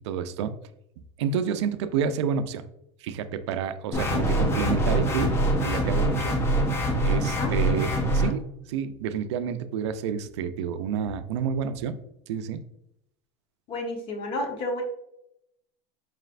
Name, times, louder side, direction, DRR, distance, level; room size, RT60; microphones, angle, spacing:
voice 1, 0.1-0.5 1.2-2.6 3.0-5.4 5.6-6.4 7.0-8.4 8.7-11.9 12.3-12.6, right 7 dB, 85° right, 10 dB, 0.4 m, -29 dB
sound 1, 3.9-8.3, right 1 dB, 20° left, 0.6 m, -24 dB
voice 2, 7.2-7.5 13.7-14.8, left 1 dB, 40° left, 3 dB, 0.9 m, -31 dB
4.9 x 3.2 x 2.4 m, 0.79 s
supercardioid pair, 150°, 14 cm